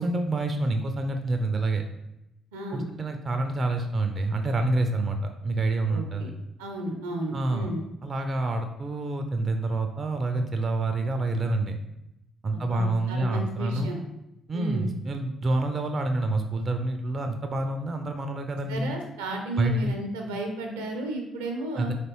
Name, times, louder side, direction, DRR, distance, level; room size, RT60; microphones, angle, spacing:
voice 1, 0.0-1.8 2.7-6.3 7.3-7.7 8.0-11.8 12.4-13.9 14.5-18.9 19.6-19.9 21.8-21.9, right 2 dB, 40° right, 5 dB, 0.5 m, -27 dB
voice 2, 2.5-2.9 5.9-6.3 6.6-7.8 12.5-14.0 14.5-14.9 18.7-21.9, right 1 dB, 85° right, 2 dB, 0.6 m, -33 dB
4.1 x 3.0 x 3.0 m, 0.87 s
hypercardioid pair, 50°, 0 cm